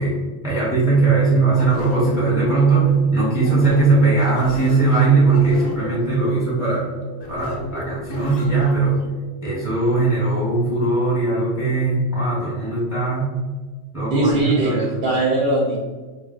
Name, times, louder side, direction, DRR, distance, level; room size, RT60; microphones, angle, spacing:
voice 1, 0.0-6.9 7.3-9.0 9.4-13.3 13.9-15.0, right 3 dB, 5° right, -7 dB, 0.7 m, -19 dB
sound 1, 0.8-12.5, right 1 dB, 80° left, 0.9 m, -38 dB
sound 2, 1.6-9.1, left 1 dB, 50° left, 0.5 m, -35 dB
voice 2, 14.1-15.8, right 2 dB, 60° right, -3 dB, 0.8 m, -20 dB
2.4 x 2.1 x 3.5 m, 1.3 s
omnidirectional pair, 1.2 m